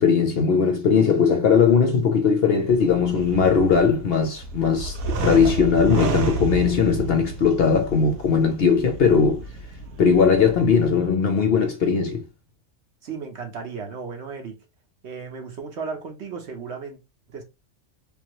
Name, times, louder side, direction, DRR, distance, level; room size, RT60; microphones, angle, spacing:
voice 1, 0.0-9.4 10.0-12.2, left 6 dB, 60° left, 0.7 m, -19 dB
sound 1, 2.6-11.1, right 3 dB, 90° right, 1.2 m, -31 dB
voice 2, 13.0-14.6 15.0-17.0 17.3-17.4, right 5 dB, 60° right, 1.1 m, -35 dB
3.7 x 2.8 x 2.9 m
omnidirectional pair, 1.4 m